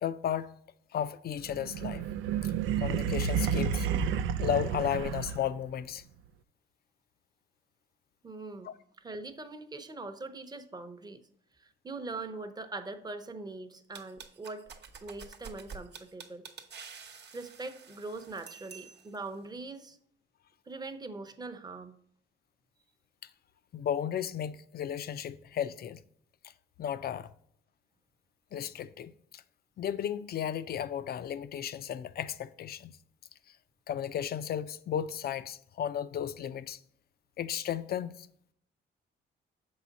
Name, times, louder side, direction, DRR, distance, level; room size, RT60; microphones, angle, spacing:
voice 1, 0.0-0.6 0.9-2.1 2.4-2.5 2.8-3.9 4.4-6.0 8.6-8.7 23.7-26.0 26.4-26.5 26.8-27.3 28.5-29.4 29.8-33.0 33.9-36.8 37.4-38.2, left 9 dB, 50° left, 0.4 m, -34 dB
sound 1, 1.5-5.7, right 7 dB, 85° right, 0.4 m, -31 dB
voice 2, 8.2-11.2 11.6-14.7 15.0-16.5 17.3-20.0 20.7-22.0, right 3 dB, 20° right, 0.8 m, -42 dB
sound 2, 13.9-19.3, right 5 dB, 60° right, 1.0 m, -49 dB
6.6 x 4.8 x 4.0 m
cardioid pair, 90°, 20 cm